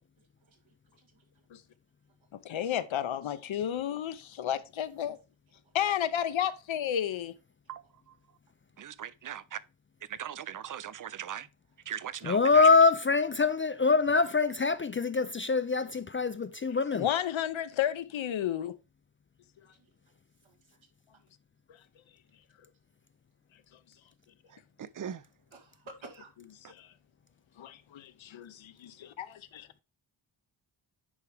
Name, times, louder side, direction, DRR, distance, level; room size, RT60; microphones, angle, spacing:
voice 1, 2.3-5.2 5.7-7.3 16.9-18.7 21.7-21.8 26.7-26.9 27.6-29.7, left 10 dB, 80° left, 0.8 m, -32 dB
voice 2, 8.8-9.6 10.1-11.5 11.9-12.7 24.8-25.2, right 9 dB, 45° right, 0.6 m, -39 dB
voice 3, 12.2-17.1, left 4 dB, 30° left, 0.3 m, -24 dB
voice 4, 25.5-26.3, right 2 dB, 75° right, 2.2 m, -50 dB
9.8 x 4.8 x 3.4 m
wide cardioid pair, 95°, 47 cm